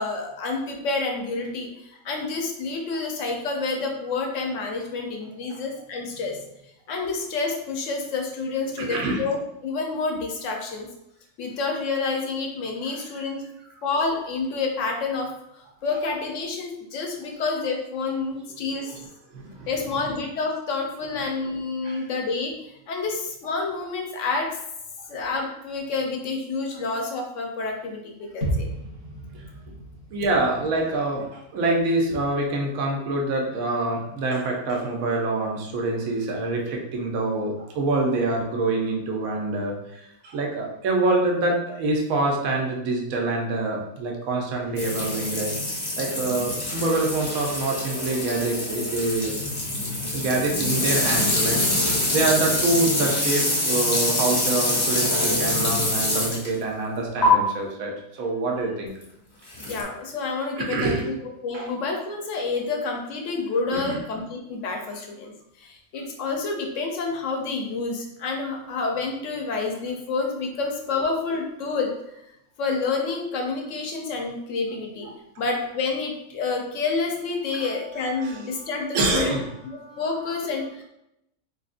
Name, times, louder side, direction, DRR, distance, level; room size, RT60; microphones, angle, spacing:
voice 1, 0.0-6.4 6.9-10.9 11.4-13.4 13.8-18.9 19.7-24.6 25.1-28.7 59.7-61.1 61.4-65.3 65.6-72.2 72.6-75.1 75.4-79.4 80.0-80.8, left 4 dB, 65° left, 2 dB, 0.9 m, -28 dB
voice 2, 8.9-9.2 12.9-13.0 18.8-18.9 19.3-19.7 21.1-21.2 21.8-22.0 30.1-45.5 46.0-49.3 50.1-58.9 60.6-61.1 61.5-61.7 63.7-64.0 77.5-77.7 78.2-78.4 78.9-79.5 79.8-80.0, right 2 dB, 70° right, 0 dB, 1.1 m, -26 dB
sound 1, 28.4-32.3 32.7-32.8, right 1 dB, 20° right, 0.7 m, -34 dB
sound 2, 44.8-56.6 57.2-57.3 59.5-59.8, left 1 dB, 30° left, 0.4 m, -25 dB
3.9 x 3.5 x 2.4 m, 0.84 s
omnidirectional pair, 1.6 m